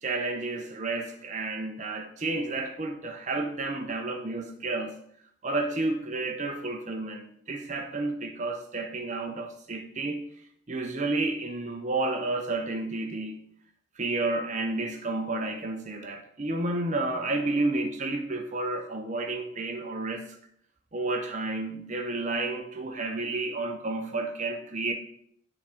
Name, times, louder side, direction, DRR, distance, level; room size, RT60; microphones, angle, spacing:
voice 1, 0.0-4.9 5.4-10.2 10.7-13.3 14.0-20.3 20.9-24.9, right 2 dB, 35° right, 4 dB, 0.6 m, -31 dB
9.8 x 3.6 x 4.4 m, 0.67 s
head